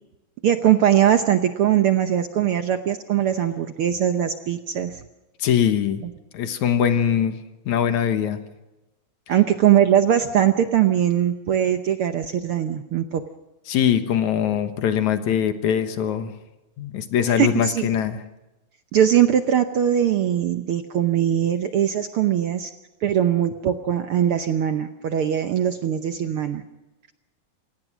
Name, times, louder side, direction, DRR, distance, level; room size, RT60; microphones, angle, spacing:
voice 1, 0.4-5.0 9.3-13.2 17.3-17.9 18.9-22.7 23.0-26.6, right 10 dB, 70° right, 8 dB, 1.4 m, -21 dB
voice 2, 5.4-6.0 6.3-7.4 7.7-8.4 13.7-16.3 16.8-18.2, left 8 dB, 75° left, 9 dB, 2.6 m, -22 dB
28.0 x 17.5 x 6.1 m, 1.0 s
omnidirectional pair, 3.4 m